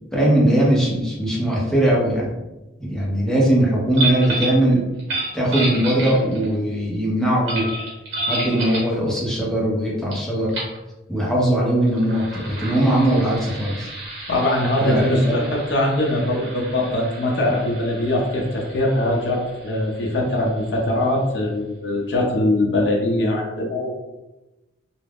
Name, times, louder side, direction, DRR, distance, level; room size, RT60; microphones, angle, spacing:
voice 1, 0.1-2.3 2.8-4.8 5.3-7.7 8.3-10.6 11.1-13.9 14.8-15.4, right 1 dB, 5° left, -5 dB, 0.6 m, -20 dB
sound 1, 3.9-4.6 5.0-6.5 7.5-8.9 10.1-10.2 10.5-10.8 11.8-21.1, right 2 dB, 80° right, 1.0 m, -31 dB
voice 2, 14.3-24.0, left 1 dB, 60° left, -1 dB, 0.5 m, -22 dB
2.3 x 2.0 x 3.4 m, 1.0 s
head